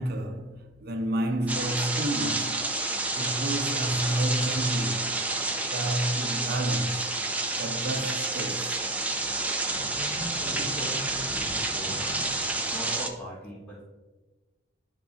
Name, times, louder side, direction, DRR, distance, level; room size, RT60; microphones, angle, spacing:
voice 1, 0.0-2.7 3.1-5.3 5.6-7.1 7.6-8.8, right 1 dB, 55° right, 0.7 m, -30 dB
sound 1, 1.5-13.1, right 2 dB, 10° right, 0.5 m, -29 dB
voice 2, 9.9-12.3 12.7-13.8, equal, 20° left, 1.8 m, -40 dB
11.0 x 3.6 x 2.5 m
head